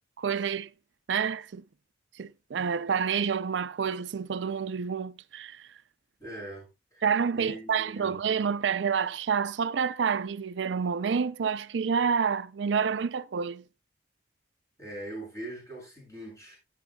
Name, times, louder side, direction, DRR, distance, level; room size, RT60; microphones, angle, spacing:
voice 1, 0.2-0.7 1.1-1.6 2.2-5.7 7.0-13.6, right 6 dB, 80° right, 0.4 m, -28 dB
voice 2, 6.2-7.1 7.3-8.1 14.8-16.6, right 1 dB, 15° left, 7.9 m, -41 dB
16.5 x 8.1 x 2.3 m
head